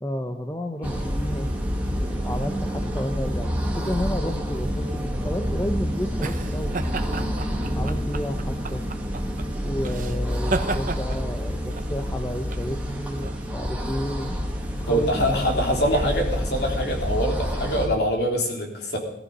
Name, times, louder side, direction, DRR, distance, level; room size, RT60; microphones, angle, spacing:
voice 1, 0.0-1.5 2.2-6.8 7.7-8.8 9.6-14.4 14.8-16.1, equal, 15° left, 6 dB, 0.8 m, -31 dB
sound 1, 0.8-17.9, equal, 10° right, 2.3 m, -28 dB
sound 2, 5.1-14.3, right 3 dB, 40° right, 0.9 m, -34 dB
voice 2, 14.9-19.0, equal, 55° left, 1 dB, 3.6 m, -24 dB
18.5 x 13.0 x 5.5 m, 0.76 s
head